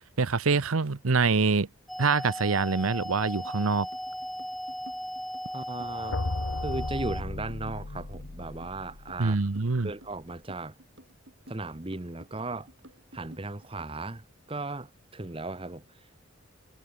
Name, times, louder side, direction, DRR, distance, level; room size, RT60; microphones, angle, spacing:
voice 1, 0.2-1.7 2.0-3.9 9.2-9.9, right 4 dB, 90° right, 0.9 m, -25 dB
sound 1, 1.9-7.2, equal, ahead, 0.5 m, -37 dB
sound 2, 3.4-14.0, right 1 dB, 60° right, 6.6 m, -53 dB
voice 2, 5.5-6.2 6.6-9.4 9.8-10.7 11.5-12.7 13.1-16.2, right 2 dB, 25° right, 1.1 m, -36 dB
sound 3, 5.8-9.8, left 2 dB, 75° left, 1.2 m, -36 dB
head